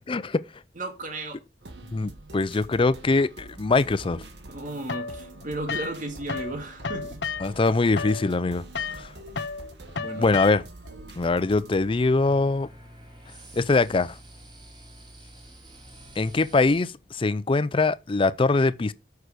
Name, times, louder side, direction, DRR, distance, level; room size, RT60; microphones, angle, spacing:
voice 1, 0.1-0.4 1.9-4.2 7.4-9.1 10.2-10.6 11.2-12.7 13.5-14.1 16.2-18.9, left 3 dB, 30° left, 0.5 m, -23 dB
voice 2, 0.8-1.4 4.5-7.2 7.5-7.6 10.0-10.3, right 2 dB, 50° right, 2.3 m, -34 dB
sound 1, 1.6-11.8, right 1 dB, 75° right, 1.9 m, -45 dB
sound 2, 4.9-6.5 6.8-10.9, left 5 dB, 75° left, 1.0 m, -33 dB
sound 3, 11.7-16.9, right 1 dB, 25° right, 3.9 m, -48 dB
9.1 x 6.6 x 5.0 m
head